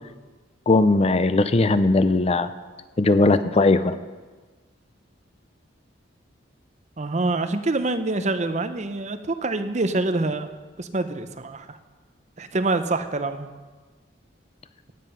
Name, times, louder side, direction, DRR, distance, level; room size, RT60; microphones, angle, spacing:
voice 1, 0.7-2.5 3.0-3.9, left 2 dB, 35° left, 12 dB, 0.5 m, -19 dB
voice 2, 7.0-10.5 10.8-11.8 12.4-13.5, right 2 dB, 40° right, 9 dB, 0.7 m, -26 dB
15.5 x 9.4 x 5.6 m, 1.3 s
head